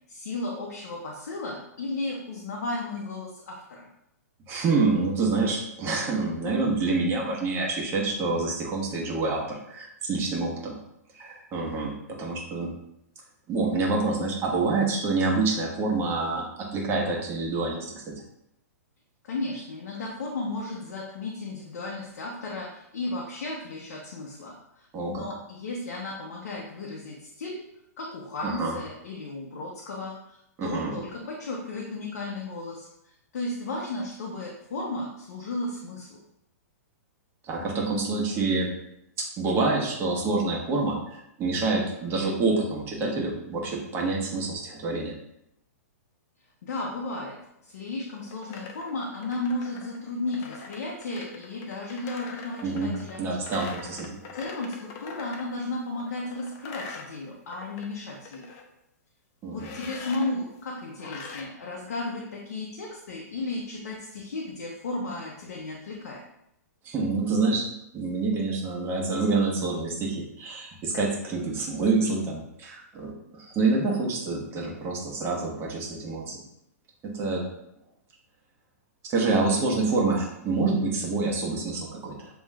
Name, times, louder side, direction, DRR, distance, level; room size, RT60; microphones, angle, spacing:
voice 1, 0.1-3.9 19.2-27.6 28.0-36.2 46.6-53.2 54.3-58.5 59.5-66.2, left 2 dB, 65° left, -2 dB, 0.9 m, -34 dB
voice 2, 4.5-10.8 11.1-12.7 13.5-18.1 24.9-25.3 28.4-28.7 30.6-30.9 37.4-38.7 39.2-45.1 52.6-54.2 59.4-59.7 66.8-67.7 67.9-76.4 77.0-77.4 79.0-82.3, right 3 dB, 30° right, -1 dB, 1.2 m, -27 dB
sound 1, 48.2-55.5 56.0-57.9 58.1-58.6 59.6-60.3 61.0-61.4, left 4 dB, 40° left, 0.7 m, -43 dB
7.2 x 3.0 x 2.4 m, 0.79 s
hypercardioid pair, 120°, 9 cm